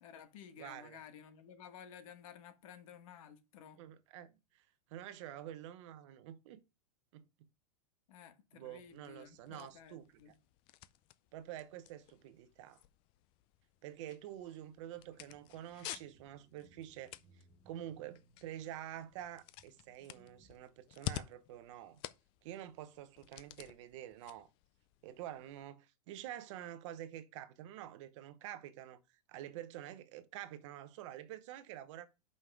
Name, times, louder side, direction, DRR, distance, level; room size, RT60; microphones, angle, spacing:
voice 1, 0.0-3.8 8.1-10.3, left 8 dB, 60° left, 1.4 m, -54 dB
voice 2, 0.6-1.0 3.8-4.6 4.9-6.6 7.1-7.2 8.5-10.3 11.3-12.8 13.8-17.1 17.7-22.0 22.4-24.5 25.0-29.0 29.3-32.1, right 12 dB, 50° right, 0.9 m, -48 dB
sound 1, 8.7-25.7, left 14 dB, 25° left, 0.3 m, -51 dB
sound 2, 14.9-20.6, right 2 dB, 30° right, 1.5 m, -67 dB
5.5 x 5.5 x 4.8 m
supercardioid pair, 155°, 20 cm